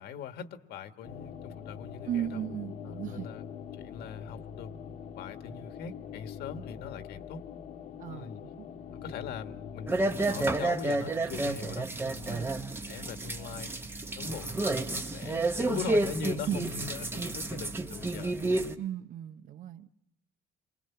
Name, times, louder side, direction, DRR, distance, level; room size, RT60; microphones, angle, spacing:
voice 1, 0.0-2.4 2.8-3.4 3.8-4.7 5.2-7.4 8.1-8.4 8.9-12.6 12.9-13.7 14.2-18.7, left 6 dB, 70° left, 1.6 m, -41 dB
sound 1, 1.0-10.6, left 8 dB, 50° left, 1.3 m, -43 dB
voice 2, 2.0-3.3 8.0-8.7 12.3-12.6 16.5-16.7 18.7-19.9, right 10 dB, 50° right, 1.0 m, -36 dB
sound 2, 9.9-18.7, right 2 dB, 15° right, 1.0 m, -31 dB
28.0 x 24.0 x 5.8 m
cardioid pair, 165°, 17 cm